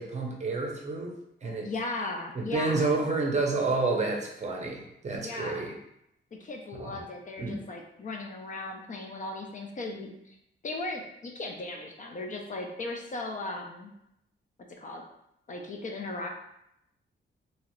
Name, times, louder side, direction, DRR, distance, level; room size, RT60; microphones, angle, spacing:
voice 1, 0.0-1.7 2.3-5.7 6.8-7.0 7.4-7.6, right 3 dB, 35° right, 0 dB, 0.6 m, -29 dB
voice 2, 1.6-2.9 5.2-5.8 6.3-10.4 10.6-13.9 14.8-15.0 15.5-16.3, left 2 dB, 40° left, 2 dB, 0.4 m, -37 dB
2.9 x 2.3 x 3.0 m, 0.80 s
wide cardioid pair, 135°, 20 cm